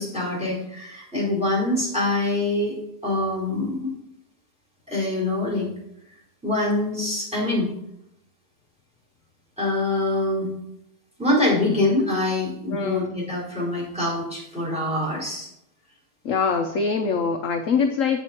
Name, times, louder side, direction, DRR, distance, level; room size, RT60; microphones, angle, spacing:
voice 1, 0.0-2.8 3.0-3.9 4.9-5.7 6.4-7.7 9.6-10.5 11.2-15.5, left 2 dB, 5° right, -5 dB, 4.0 m, -24 dB
voice 2, 12.7-13.2 16.2-18.2, left 5 dB, 60° left, 6 dB, 0.9 m, -23 dB
8.0 x 7.9 x 4.3 m, 0.79 s
omnidirectional pair, 1.8 m